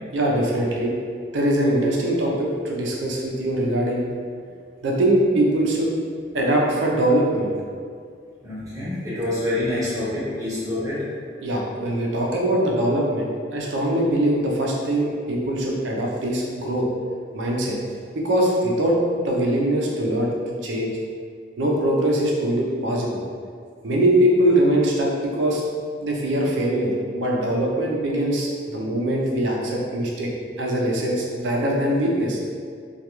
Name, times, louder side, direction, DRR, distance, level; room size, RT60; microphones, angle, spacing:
voice 1, 0.1-0.9 1.3-4.0 4.8-5.9 6.3-7.5 11.4-16.9 17.3-17.8 18.1-19.0 19.2-20.3 20.6-20.9 21.6-23.2 23.8-25.6 26.0-30.3 30.6-32.4, right 1 dB, 85° right, -2 dB, 0.5 m, -22 dB
voice 2, 8.4-11.0, left 1 dB, 20° right, -10 dB, 0.8 m, -26 dB
2.3 x 2.2 x 2.9 m, 2.1 s
head